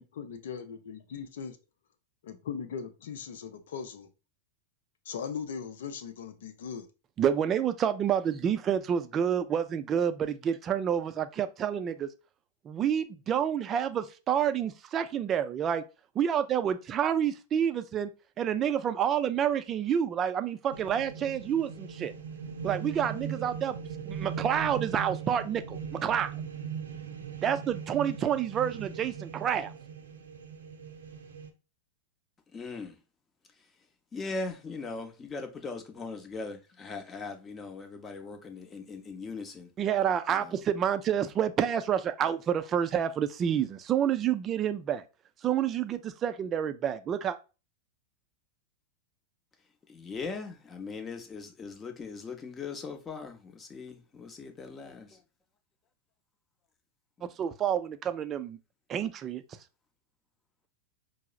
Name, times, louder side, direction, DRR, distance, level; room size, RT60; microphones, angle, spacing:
voice 1, 0.0-1.6 2.2-4.1 5.1-6.9, left 6 dB, 70° left, 0.5 m, -39 dB
voice 2, 7.2-12.1 12.6-15.8 16.1-18.1 18.4-22.1 22.6-23.8 24.0-26.3 27.4-29.7 39.8-45.0 45.4-47.4 57.4-58.6 58.9-59.4, right 9 dB, 30° right, 0.4 m, -28 dB
sound 1, 20.7-31.5, right 7 dB, 80° right, 0.6 m, -39 dB
voice 3, 32.5-33.0 34.1-39.7 40.4-40.5 49.9-55.1, left 4 dB, 20° left, 0.7 m, -39 dB
4.5 x 2.0 x 2.4 m
hypercardioid pair, 100°, 0 cm